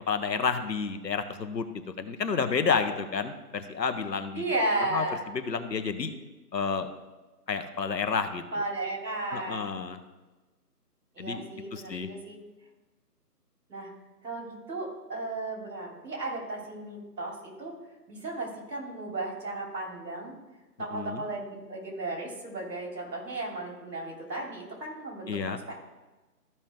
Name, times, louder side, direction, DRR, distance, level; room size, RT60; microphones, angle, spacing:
voice 1, 0.1-1.7 2.0-4.4 4.9-5.0 5.3-6.1 6.5-6.9 7.5-8.4 9.3-10.0 11.2-12.1 20.9-21.2 25.3-25.6, left 5 dB, 90° left, 9 dB, 1.2 m, -30 dB
voice 2, 4.3-5.3 8.5-9.6 11.1-12.4 13.7-13.9 14.2-17.8 18.1-20.3 20.8-25.3 25.7-25.8, right 2 dB, 90° right, 0 dB, 3.4 m, -34 dB
14.0 x 5.6 x 3.5 m, 1.2 s
hypercardioid pair, 175°, 48 cm